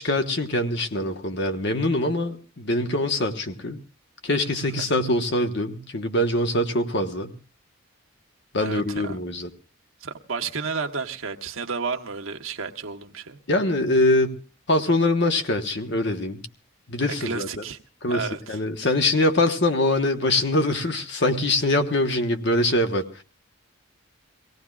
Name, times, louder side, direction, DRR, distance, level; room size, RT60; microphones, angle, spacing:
voice 1, 0.0-3.8 4.2-7.3 8.5-9.5 13.5-14.4 14.7-16.4 16.9-17.6 18.0-23.1, left 1 dB, 55° left, 1.2 m, -23 dB
voice 2, 8.6-9.2 10.0-13.4 17.2-17.8 18.1-18.6, right 5 dB, 85° right, 1.1 m, -31 dB
24.0 x 17.5 x 2.4 m
head